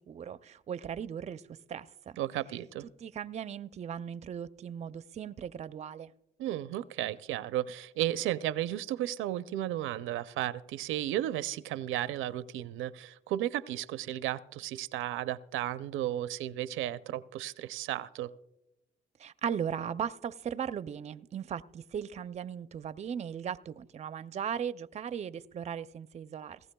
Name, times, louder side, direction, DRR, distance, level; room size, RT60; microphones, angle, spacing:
voice 1, 0.0-1.4 1.7-2.2 3.0-6.1 19.2-26.6, right 8 dB, 35° right, 0.4 m, -37 dB
voice 2, 2.2-2.9 6.4-18.3, right 13 dB, 90° right, 0.5 m, -34 dB
18.5 x 15.0 x 2.2 m
cardioid pair, 90°, 20 cm